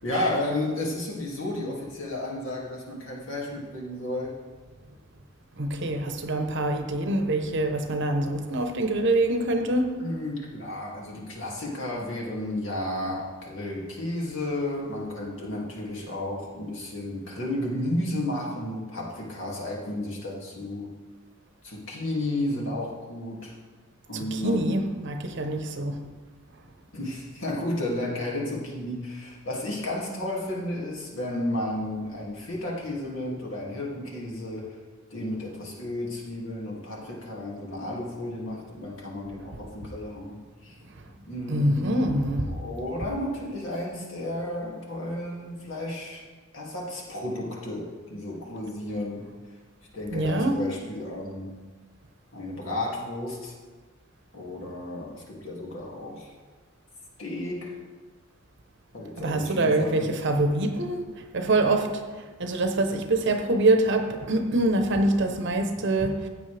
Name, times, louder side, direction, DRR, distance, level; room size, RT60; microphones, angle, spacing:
voice 1, 0.0-4.3 10.0-20.9 21.6-23.5 24.1-24.6 26.9-34.8 35.1-40.8 41.3-42.1 42.5-46.2 46.5-49.3 49.9-51.6 52.3-53.5 54.3-56.3 57.2-57.8 58.9-60.1, left 1 dB, 60° left, 2.5 m, -32 dB
voice 2, 5.6-9.9 24.1-26.1 41.0-41.1 41.5-42.6 50.1-50.6 59.2-66.3, right 2 dB, 55° right, 0.9 m, -25 dB
15.0 x 8.3 x 3.4 m
head